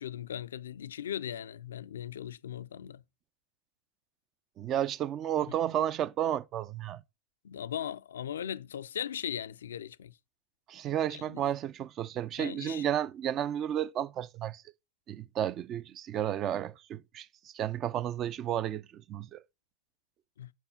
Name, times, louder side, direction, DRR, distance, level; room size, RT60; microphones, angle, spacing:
voice 1, 0.0-3.0 7.4-10.2 11.1-11.5 12.4-12.8 20.4-20.5, left 10 dB, 85° left, 0.3 m, -38 dB
voice 2, 4.6-7.0 10.7-14.6 15.1-19.4, right 10 dB, 40° right, 0.4 m, -32 dB
5.5 x 4.5 x 5.6 m
hypercardioid pair, 105°, 0 cm